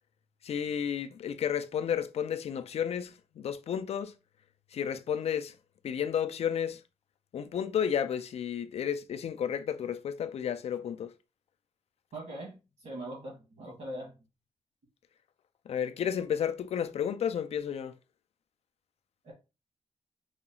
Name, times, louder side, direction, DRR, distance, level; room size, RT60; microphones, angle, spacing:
voice 1, 0.4-4.1 4.7-5.5 5.8-6.8 7.3-11.1 15.7-17.9, left 8 dB, 60° left, 0.4 m, -32 dB
voice 2, 12.1-12.5 12.8-14.1 19.2-19.3, right 1 dB, 70° right, 2.1 m, -41 dB
4.9 x 2.3 x 2.9 m
wide cardioid pair, 155°, 12 cm